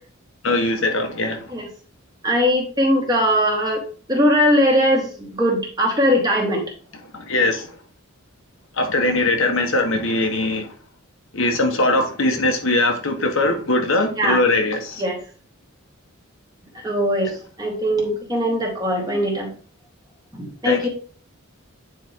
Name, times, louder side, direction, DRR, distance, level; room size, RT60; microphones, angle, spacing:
voice 1, 0.4-1.5 7.1-7.8 8.7-10.7 11.3-15.0 20.6-20.9, left 2 dB, 65° left, 1.2 m, -21 dB
voice 2, 2.2-3.8 4.1-6.6 14.2-14.4 15.0-15.2 16.8-17.3 17.6-19.5 20.3-20.9, equal, 20° right, 2.0 m, -20 dB
9.4 x 4.3 x 3.6 m
head